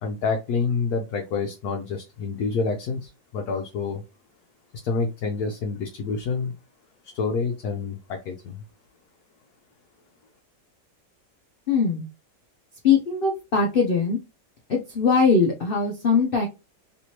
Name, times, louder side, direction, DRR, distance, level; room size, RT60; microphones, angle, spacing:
voice 1, 0.0-4.0 4.8-6.5 7.1-8.6, left 4 dB, 70° left, 3 dB, 1.1 m, -28 dB
voice 2, 11.7-12.1 12.8-14.2 14.7-16.5, left 5 dB, 85° left, 0 dB, 0.4 m, -21 dB
3.3 x 3.0 x 2.8 m, 0.27 s
omnidirectional pair, 1.9 m